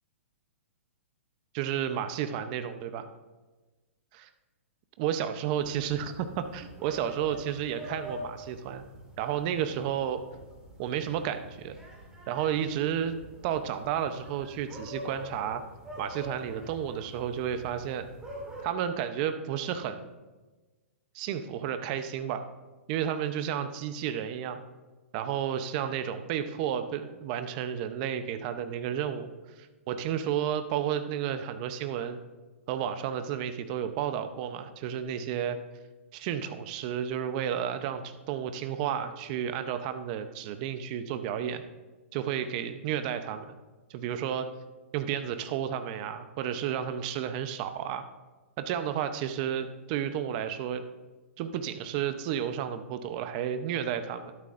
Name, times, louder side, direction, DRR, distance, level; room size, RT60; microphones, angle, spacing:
voice 1, 1.5-3.1 4.1-4.3 5.0-8.8 9.2-10.2 10.8-11.8 12.3-13.2 13.4-15.6 16.0-18.1 18.6-20.0 21.1-22.4 22.9-24.6 25.1-29.3 29.6-32.2 32.7-35.6 36.1-41.6 42.1-43.5 43.9-44.5 44.9-48.0 48.6-50.8 51.4-54.3, right 9 dB, 35° right, 9 dB, 0.7 m, -32 dB
sound 1, 5.5-18.6, equal, 10° right, 2.2 m, -45 dB
12.0 x 12.0 x 2.6 m, 1.2 s
hypercardioid pair, 150°, 7 cm